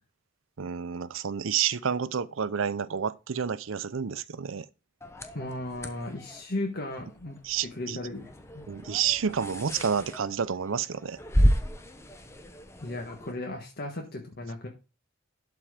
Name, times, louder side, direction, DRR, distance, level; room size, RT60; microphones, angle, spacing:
voice 1, 0.6-4.7 7.4-8.0 8.7-11.2, right 7 dB, 80° right, 0.6 m, -29 dB
sound 1, 5.0-13.3, equal, 15° left, 1.0 m, -32 dB
voice 2, 5.3-8.3 8.5-8.6 12.8-14.7, left 2 dB, 55° left, 1.4 m, -36 dB
11.5 x 4.5 x 5.0 m
head